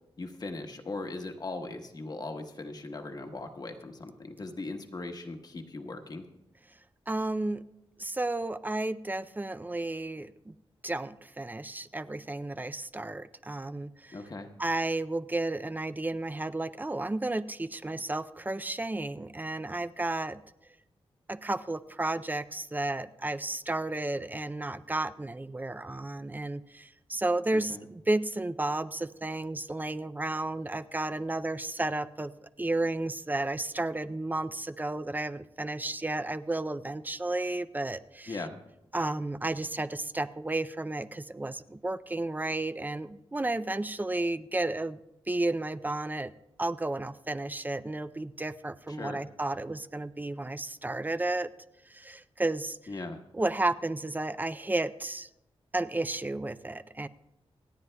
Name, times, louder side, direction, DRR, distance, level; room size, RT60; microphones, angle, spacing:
voice 1, 0.2-6.2 14.1-14.5 27.5-27.8 38.3-38.6 48.9-49.2 52.9-53.2, left 2 dB, 40° left, 5 dB, 1.1 m, -39 dB
voice 2, 7.1-7.6 8.0-10.5 10.8-14.2 14.6-20.4 21.3-32.3 32.6-38.4 38.9-45.0 45.3-46.3 46.6-51.5 51.9-52.8 53.3-55.3 55.7-57.1, right 2 dB, 20° right, 13 dB, 0.4 m, -32 dB
27.5 x 9.4 x 2.3 m, 0.86 s
wide cardioid pair, 105°, 10 cm